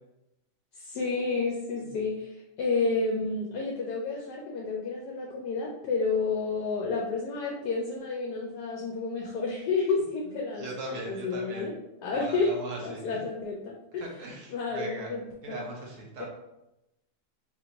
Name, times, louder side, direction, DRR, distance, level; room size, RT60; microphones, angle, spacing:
voice 1, 0.8-11.7 12.0-12.5 12.8-14.1 14.5-15.2 15.5-15.6 16.2-16.3, left 4 dB, 75° left, -1 dB, 1.1 m, -30 dB
voice 2, 10.5-11.6 12.1-13.2 14.0-15.1 15.4-16.2, right 1 dB, 55° right, -1 dB, 1.0 m, -39 dB
4.3 x 2.5 x 2.9 m, 0.91 s
omnidirectional pair, 1.9 m